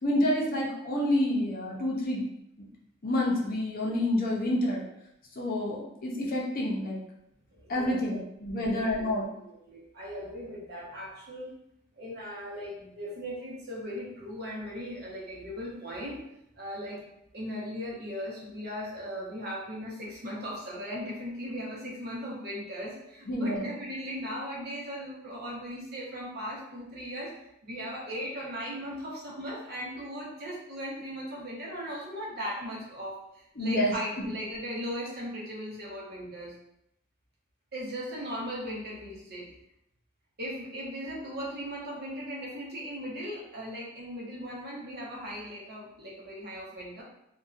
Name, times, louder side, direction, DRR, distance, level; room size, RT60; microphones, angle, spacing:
voice 1, 0.0-2.2 3.0-4.8 5.4-7.0 7.7-9.3 23.3-23.7 33.6-34.2, left 1 dB, 45° left, -3 dB, 0.6 m, -28 dB
voice 2, 7.5-8.2 8.5-9.1 9.3-11.5 12.0-16.2 16.6-27.3 27.6-36.5 37.7-39.5 40.4-47.0, equal, 55° right, -5 dB, 0.8 m, -38 dB
2.6 x 2.2 x 2.4 m, 0.80 s
head